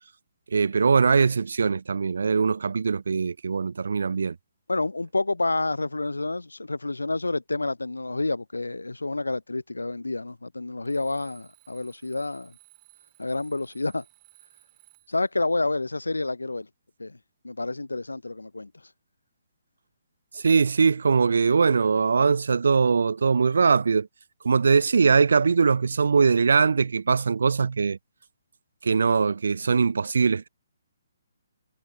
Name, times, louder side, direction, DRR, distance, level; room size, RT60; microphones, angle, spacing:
voice 1, 0.5-4.4 20.3-24.1 24.4-28.0 28.8-30.5, right 5 dB, 60° right, 0.5 m, -21 dB
voice 2, 4.7-12.5 13.2-14.0 15.1-16.7 17.0-17.2 17.4-18.7, left 2 dB, 75° left, 0.7 m, -29 dB
Alarm, 10.8-15.3, right 34 dB, 25° right, 3.1 m, -58 dB
figure-of-eight pair, 135°, 0 cm